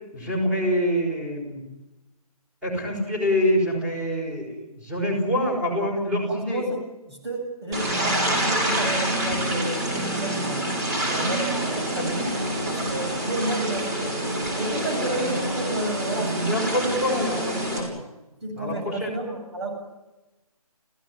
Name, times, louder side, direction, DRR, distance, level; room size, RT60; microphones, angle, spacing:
voice 1, 0.1-1.6 2.6-6.6 11.1-11.4 11.9-12.3 15.2-15.3 16.1-17.9 18.6-19.1, equal, 5° right, 1 dB, 5.7 m, -26 dB
voice 2, 6.3-6.8 7.1-10.7 11.0-12.1 12.6-14.2 14.6-16.4 18.4-19.7, right 1 dB, 45° right, 2 dB, 7.9 m, -31 dB
sound 1, 7.7-17.8, right 1 dB, 30° right, 7.8 m, -26 dB
29.5 x 16.5 x 9.9 m, 1.0 s
hypercardioid pair, 165°, 19 cm